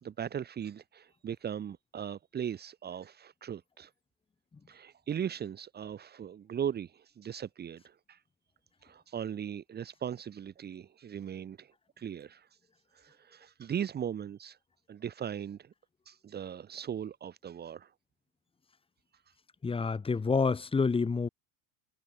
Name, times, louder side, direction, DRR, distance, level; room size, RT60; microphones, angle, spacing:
voice 1, 0.0-3.9 4.7-8.2 8.8-12.5 12.9-14.6 14.9-15.7 16.0-17.9, right 9 dB, 20° right, 3.0 m, -38 dB
voice 2, 19.6-21.3, left 4 dB, 10° left, 5.9 m, -28 dB
cardioid pair, 170°, 42 cm